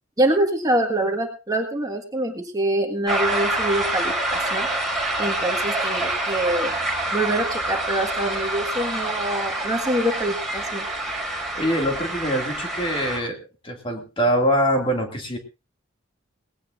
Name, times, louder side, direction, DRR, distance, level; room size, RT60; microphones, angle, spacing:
voice 1, 0.2-4.7 5.2-6.7 7.1-10.8, right 1 dB, 15° right, 3 dB, 1.6 m, -25 dB
sound 1, 3.1-13.2, right 1 dB, ahead, 4.7 m, -26 dB
voice 2, 11.5-13.4 13.6-15.4, equal, 25° left, 3 dB, 2.3 m, -23 dB
19.0 x 17.5 x 2.5 m, 0.30 s
head